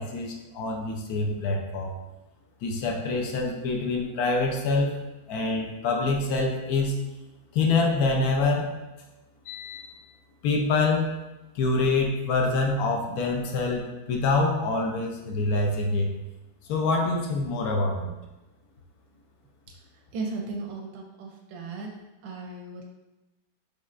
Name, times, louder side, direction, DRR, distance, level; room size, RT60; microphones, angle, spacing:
voice 1, 0.0-1.9 2.6-4.9 5.3-6.9 7.5-8.7 9.5-9.9 10.4-11.1 11.5-16.1 16.7-18.1, left 3 dB, 65° left, 1 dB, 1.0 m, -25 dB
voice 2, 20.1-21.9 22.2-22.8, right 3 dB, 85° right, 0 dB, 1.4 m, -35 dB
5.4 x 3.3 x 2.5 m, 1.0 s
omnidirectional pair, 2.0 m